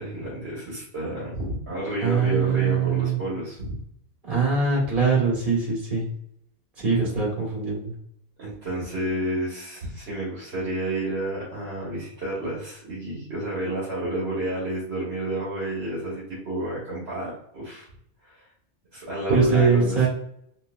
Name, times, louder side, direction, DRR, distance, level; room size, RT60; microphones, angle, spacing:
voice 1, 0.0-3.8 7.0-7.2 8.4-17.9 18.2-18.4 18.9-20.1, right 1 dB, 70° right, -7 dB, 1.5 m, -30 dB
voice 2, 2.0-3.2 4.2-6.1 6.8-7.9 19.3-20.1, right 5 dB, 50° right, -3 dB, 1.9 m, -22 dB
4.6 x 2.0 x 2.4 m, 0.71 s
omnidirectional pair, 1.1 m